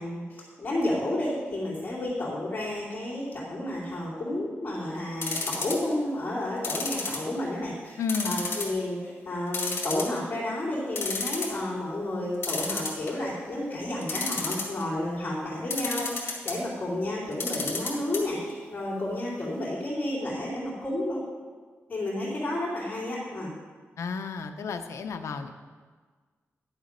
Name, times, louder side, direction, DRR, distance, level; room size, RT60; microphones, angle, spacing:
voice 1, 0.0-8.0 8.2-21.2 21.9-23.5, left 1 dB, 35° left, -11 dB, 2.9 m, -31 dB
sound 1, 5.2-5.9 6.6-7.6 8.1-8.8 9.1-9.2 9.5-10.4 10.7-10.8 11.0-11.6 12.4-13.3 14.0-14.8 15.7-16.6 17.3-18.2 18.5-18.6 18.8-18.9, left 4 dB, 55° left, 2.1 m, -31 dB
voice 2, 8.0-8.4 24.0-25.5, left 5 dB, 85° left, 7 dB, 0.7 m, -32 dB
11.0 x 7.3 x 5.2 m, 1.5 s
wide cardioid pair, 150°, 5 cm